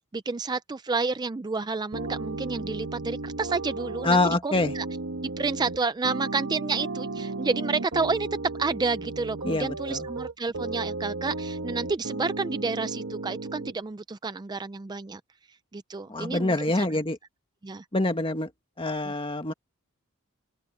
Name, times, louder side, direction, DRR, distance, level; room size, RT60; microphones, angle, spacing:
voice 1, 0.0-4.9 5.2-8.3 8.6-15.2 15.7-16.9 17.6-17.9 19.0-19.1, right 4 dB, 20° right, 0.4 m, -30 dB
sound 1, 1.9-13.7, right 3 dB, 70° right, 1.4 m, -34 dB
voice 2, 4.0-4.7 9.4-10.1 16.1-17.2 17.9-18.5 18.8-19.5, left 2 dB, 25° left, 1.7 m, -25 dB
open air
head